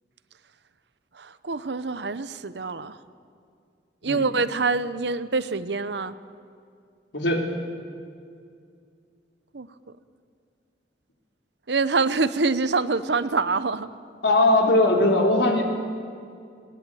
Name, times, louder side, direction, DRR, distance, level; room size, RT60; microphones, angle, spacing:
voice 1, 1.2-3.0 4.0-6.2 9.5-9.7 11.7-13.9, right 4 dB, 75° right, 14 dB, 0.9 m, -25 dB
voice 2, 7.1-7.5 14.2-15.6, left 2 dB, 80° left, 2 dB, 3.6 m, -20 dB
20.5 x 19.0 x 9.2 m, 2.3 s
head